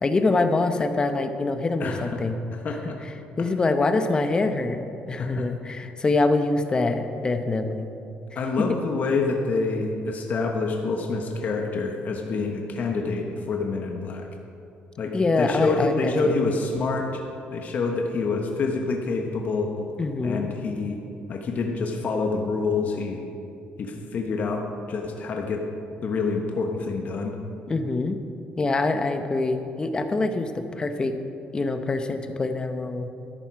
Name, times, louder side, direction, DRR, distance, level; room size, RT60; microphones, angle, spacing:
voice 1, 0.0-2.4 3.4-4.8 5.1-7.9 15.1-16.4 20.0-20.5 27.7-28.2 28.6-31.1 31.5-33.1, left 3 dB, 25° left, 8 dB, 0.9 m, -24 dB
voice 2, 1.8-2.3 2.6-3.0 5.2-5.5 8.3-14.3 15.0-17.2 17.5-19.9 20.2-21.0 21.3-23.2 23.8-25.6 26.0-27.3, left 4 dB, 50° left, 2 dB, 1.2 m, -27 dB
13.0 x 11.0 x 4.7 m, 2.7 s
cardioid pair, 125°, 4 cm